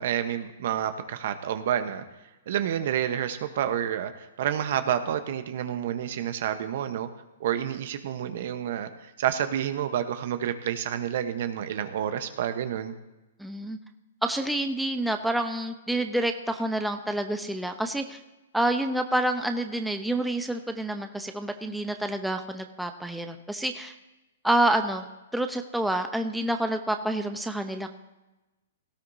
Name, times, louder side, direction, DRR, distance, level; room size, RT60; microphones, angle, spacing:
voice 1, 0.0-2.0 2.5-7.1 7.4-12.9, right 10 dB, 60° right, 9 dB, 1.0 m, -29 dB
voice 2, 13.4-13.8 14.2-18.2 18.5-23.9 24.4-25.0 25.3-27.9, right 1 dB, ahead, 5 dB, 0.7 m, -28 dB
17.5 x 14.0 x 2.8 m, 1.0 s
hypercardioid pair, 130°, 0 cm